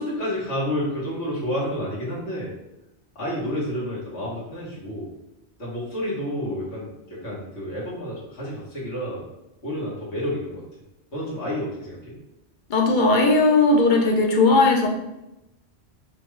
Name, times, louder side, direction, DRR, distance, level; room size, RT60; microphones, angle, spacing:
voice 1, 0.0-2.5 3.1-5.1 5.6-9.2 9.6-10.6 11.1-12.2, equal, 90° left, -7 dB, 1.7 m, -30 dB
voice 2, 12.7-14.9, left 3 dB, 55° left, 1 dB, 0.7 m, -17 dB
5.1 x 2.4 x 3.1 m, 0.93 s
omnidirectional pair, 1.1 m